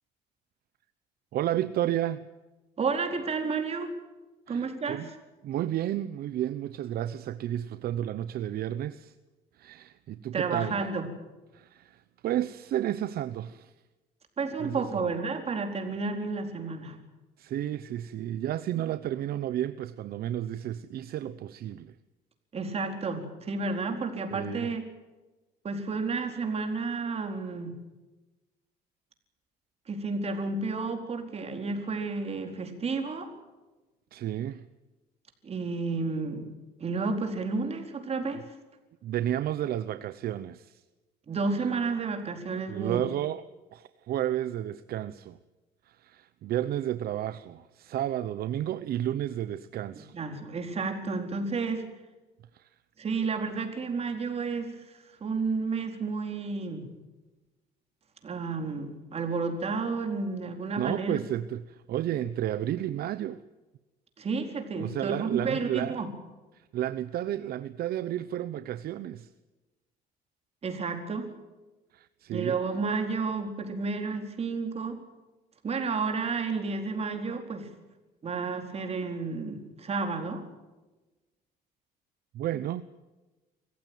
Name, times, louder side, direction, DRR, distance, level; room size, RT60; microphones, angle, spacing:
voice 1, 1.3-2.2 4.5-5.1 5.4-9.1 9.5-10.8 11.5-13.7 14.6-15.1 17.4-22.0 24.3-24.7 34.1-34.6 38.3-38.4 39.0-40.8 41.6-41.7 42.7-43.5 43.7-45.4 45.8-50.2 52.5-52.7 60.8-63.4 64.8-66.0 66.5-69.3 71.9-72.6 82.3-82.8, right 12 dB, 65° right, 0.8 m, -32 dB
voice 2, 2.8-4.0 4.5-5.0 10.3-11.1 14.4-17.0 22.5-24.8 25.6-27.7 29.9-33.3 35.4-36.5 36.8-38.4 41.3-43.0 50.1-51.9 53.0-54.8 55.2-56.9 58.2-61.2 64.2-66.1 70.6-71.3 72.3-75.0 75.6-77.7 78.2-80.4, right 4 dB, 35° right, 4.4 m, -31 dB
25.0 x 15.5 x 9.3 m
cardioid pair, 110°, 17 cm